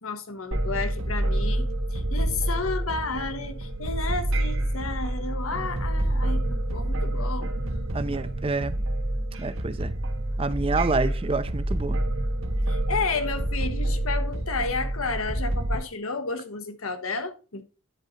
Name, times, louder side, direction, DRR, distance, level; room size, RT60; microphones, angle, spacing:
voice 1, 0.0-7.5 12.7-17.6, left 4 dB, 90° left, 1.2 m, -32 dB
sound 1, 0.5-15.8, right 1 dB, 80° right, 1.5 m, -27 dB
voice 2, 7.9-8.8 9.4-9.9 10.4-12.0, right 3 dB, 25° right, 0.4 m, -27 dB
10.0 x 4.0 x 5.0 m
head